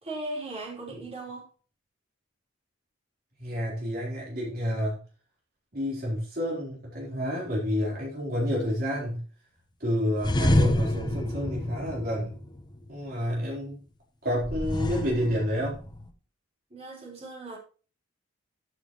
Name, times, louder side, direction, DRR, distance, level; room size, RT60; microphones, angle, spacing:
voice 1, 0.0-1.5 16.7-17.6, right 2 dB, 35° right, 4.4 m, -37 dB
voice 2, 3.4-5.0 5.7-9.2 9.8-12.4 12.9-13.8 14.2-15.8, equal, 50° right, 4.2 m, -29 dB
sound 1, 10.2-12.9 14.4-16.1, left 1 dB, 20° left, 1.1 m, -28 dB
14.0 x 7.6 x 3.2 m
head